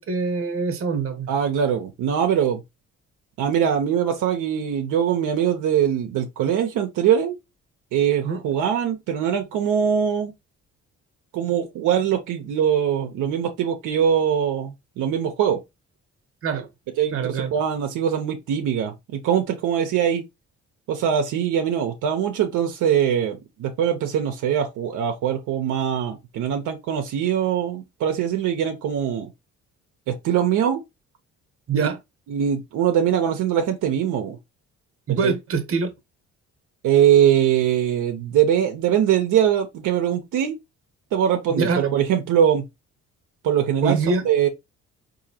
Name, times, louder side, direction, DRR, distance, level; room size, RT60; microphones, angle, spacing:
voice 1, 0.0-1.3 8.2-8.4 16.4-16.7 17.1-17.5 31.7-32.0 35.1-35.9 41.5-41.9 43.8-44.3, right 4 dB, 45° right, 1.0 m, -24 dB
voice 2, 1.3-2.6 3.4-7.4 7.9-10.3 11.3-15.6 17.0-20.2 20.9-29.3 30.1-30.8 31.7-31.9 32.3-34.4 35.1-35.3 36.8-40.6 41.1-42.6 43.4-44.0 44.2-44.5, right 9 dB, 80° right, 0.7 m, -22 dB
3.8 x 2.7 x 2.7 m
cardioid pair, 90°, 30 cm